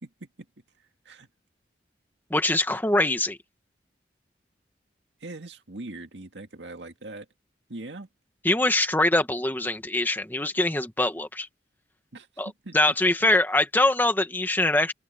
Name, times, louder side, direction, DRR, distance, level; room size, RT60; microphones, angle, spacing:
voice 1, 0.0-0.5 1.1-1.3 5.2-7.3 7.7-8.1 12.1-12.3 12.6-13.0, right 2 dB, 80° right, 2.1 m, -41 dB
voice 2, 2.3-3.4 8.4-11.5 12.4-14.9, left 2 dB, 10° left, 1.5 m, -23 dB
open air
head